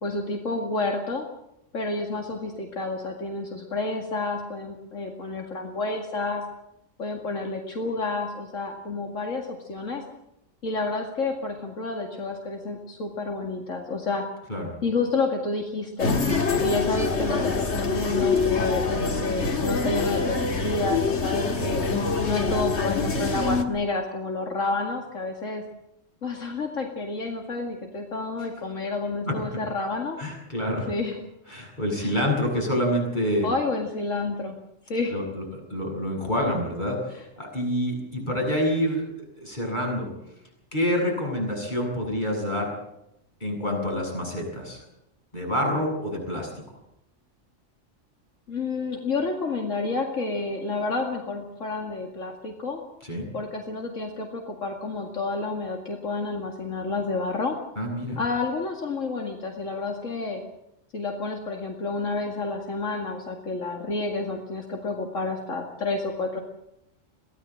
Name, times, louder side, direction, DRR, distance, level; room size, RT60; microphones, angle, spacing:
voice 1, 0.0-1.3 1.7-6.4 7.0-10.0 10.6-14.2 14.8-16.1 16.6-21.8 22.3-25.6 26.2-30.2 30.9-31.2 32.0-32.1 33.4-34.6 34.9-35.1 48.5-52.8 53.3-57.6 58.2-60.4 60.9-66.4, left 3 dB, 80° left, 2 dB, 2.6 m, -29 dB
sound 1, 16.0-23.7, left 4 dB, 60° left, 2.1 m, -25 dB
voice 2, 30.2-30.9 31.5-33.5 35.1-39.0 39.4-40.1 40.7-42.7 43.4-44.8 45.3-46.5 53.0-53.3 57.8-58.2, equal, 35° left, -1 dB, 8.0 m, -27 dB
23.0 x 17.0 x 7.7 m, 0.84 s
omnidirectional pair, 1.3 m